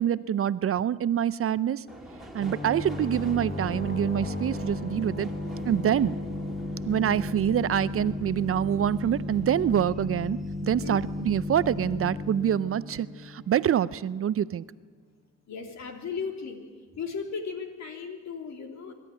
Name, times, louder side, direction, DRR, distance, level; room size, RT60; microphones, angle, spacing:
voice 1, 0.0-1.8 2.3-5.3 5.7-6.1 6.9-10.4 10.7-14.7, right 10 dB, 45° right, 17 dB, 0.6 m, -26 dB
Subway metro underground, 1.9-12.6 13.0-13.7 13.9-14.1, right 1 dB, ahead, 3.0 m, -48 dB
sound 1, 2.4-13.9, left 2 dB, 30° left, 2.5 m, -34 dB
voice 2, 15.5-16.6 16.9-18.9, left 5 dB, 65° left, 4 dB, 3.4 m, -36 dB
23.5 x 12.5 x 9.3 m, 1.5 s
cardioid pair, 90°, 30 cm